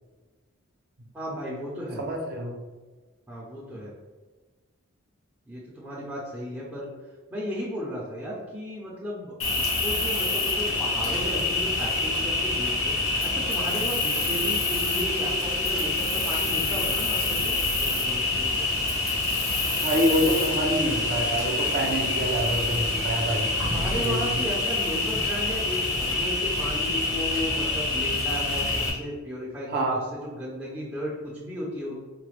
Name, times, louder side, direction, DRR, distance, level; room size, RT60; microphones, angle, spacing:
voice 1, 1.1-2.0 3.3-3.9 5.5-6.9 7.3-18.6 23.7-32.0, equal, 5° right, -7 dB, 0.6 m, -34 dB
voice 2, 2.0-2.5 19.8-24.4 29.7-30.0, equal, 50° right, -1 dB, 0.6 m, -27 dB
Cricket, 9.4-28.9, left 3 dB, 80° left, 0.9 m, -26 dB
4.0 x 2.2 x 3.1 m, 1.3 s
head